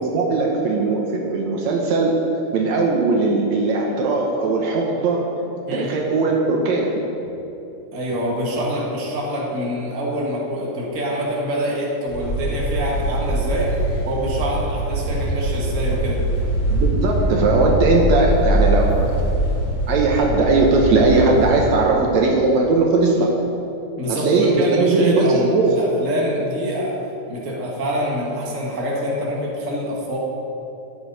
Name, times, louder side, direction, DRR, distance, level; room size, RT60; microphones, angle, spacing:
voice 1, 0.0-2.2 2.5-5.3 5.7-7.0 16.7-19.1 19.9-23.3 24.1-25.7, right 3 dB, 75° right, 0 dB, 2.2 m, -19 dB
voice 2, 7.9-13.7 14.0-16.2 24.0-27.0 27.3-30.2, equal, 30° right, -4 dB, 1.9 m, -25 dB
sound 1, 12.1-21.6, right 1 dB, 90° left, 4.2 m, -22 dB
13.0 x 9.8 x 4.1 m, 2.9 s
omnidirectional pair, 3.4 m